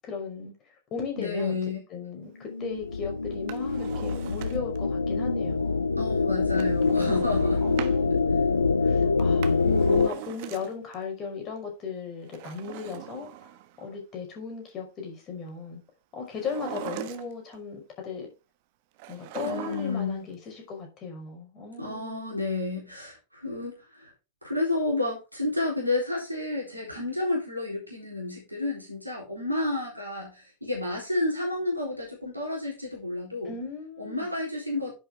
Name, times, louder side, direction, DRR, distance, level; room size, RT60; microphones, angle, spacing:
voice 1, 0.0-1.6 1.9-5.9 7.6-13.5 13.8-15.8 16.1-18.3 19.1-22.4 33.4-34.3, left 5 dB, 30° left, 5.6 m, -37 dB
voice 2, 1.2-1.8 6.0-7.6 19.4-20.2 21.8-24.1 24.4-33.5 34.0-34.9, left 2 dB, 90° right, 3.9 m, -30 dB
sound 1, 2.5-10.1, left 4 dB, 80° left, 0.6 m, -25 dB
Drawer open or close, 3.3-4.9 6.5-8.0 9.2-11.0 12.2-13.9 16.3-17.6 19.0-20.1 20.4-20.5, right 12 dB, 50° right, 1.2 m, -41 dB
10.5 x 8.6 x 3.7 m
figure-of-eight pair, 90°, 0 cm